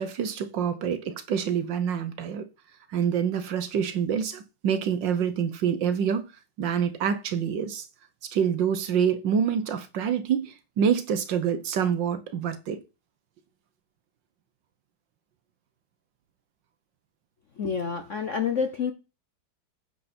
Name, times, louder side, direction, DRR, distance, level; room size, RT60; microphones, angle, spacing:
voice 1, 0.0-2.5 2.9-6.2 6.6-7.9 8.2-12.8, right 7 dB, 65° right, 1.5 m, -26 dB
voice 2, 17.6-18.9, left 6 dB, 55° left, 0.8 m, -28 dB
9.7 x 7.8 x 4.3 m
omnidirectional pair, 2.3 m